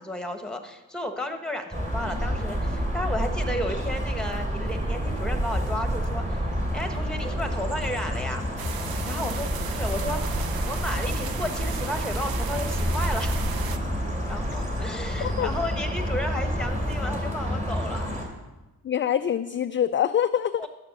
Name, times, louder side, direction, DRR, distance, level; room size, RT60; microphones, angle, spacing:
voice 1, 0.0-6.4 6.7-8.5 8.8-13.4 14.3-18.1 20.6-20.7, left 1 dB, ahead, 5 dB, 1.4 m, -33 dB
sound 1, 1.7-18.3, equal, 20° right, 3.5 m, -28 dB
sound 2, 8.6-13.8, right 8 dB, 75° right, 0.8 m, -37 dB
voice 2, 15.2-15.5 18.8-20.6, left 9 dB, 35° left, 10 dB, 0.4 m, -25 dB
11.5 x 7.1 x 6.7 m, 1.1 s
cardioid pair, 90°, 36 cm